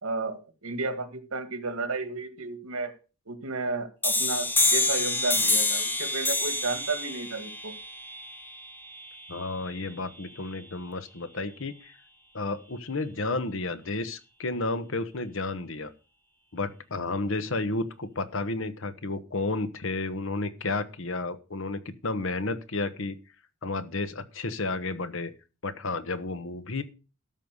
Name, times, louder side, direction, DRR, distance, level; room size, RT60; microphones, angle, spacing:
voice 1, 0.0-2.9 3.3-7.7, right 3 dB, 85° right, 9 dB, 2.0 m, -32 dB
sound 1, 4.0-9.4, left 2 dB, 10° left, 1.1 m, -27 dB
voice 2, 9.3-11.9 12.3-15.9 16.5-23.2 23.6-25.3 25.6-26.8, left 3 dB, 65° left, 11 dB, 1.2 m, -32 dB
13.0 x 5.5 x 6.6 m, 0.33 s
head